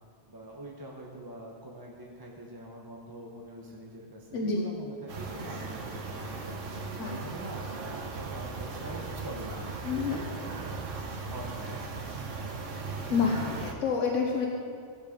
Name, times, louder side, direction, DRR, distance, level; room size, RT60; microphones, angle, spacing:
voice 1, 0.3-6.6 7.0-10.8 11.3-11.9, right 1 dB, 20° right, -2 dB, 1.0 m, -44 dB
sound 1, 5.1-13.7, right 4 dB, 85° right, 1.4 m, -38 dB
sound 2, 7.8-12.9, right 2 dB, 60° right, 2.8 m, -48 dB
voice 2, 9.8-10.2 13.1-14.5, left 5 dB, 90° left, 0 dB, 1.3 m, -28 dB
15.0 x 7.4 x 5.2 m, 2.3 s
omnidirectional pair, 1.2 m